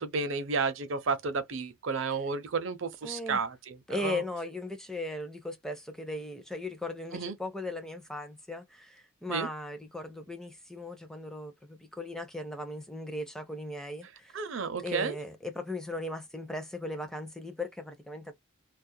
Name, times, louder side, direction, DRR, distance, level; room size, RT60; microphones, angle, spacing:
voice 1, 0.0-4.2 7.1-7.4 9.3-9.5 14.3-15.2, right 4 dB, 65° right, 0.5 m, -32 dB
voice 2, 3.0-3.4 3.9-14.4 14.8-18.3, left 2 dB, ahead, 0.5 m, -38 dB
2.3 x 2.1 x 2.6 m
head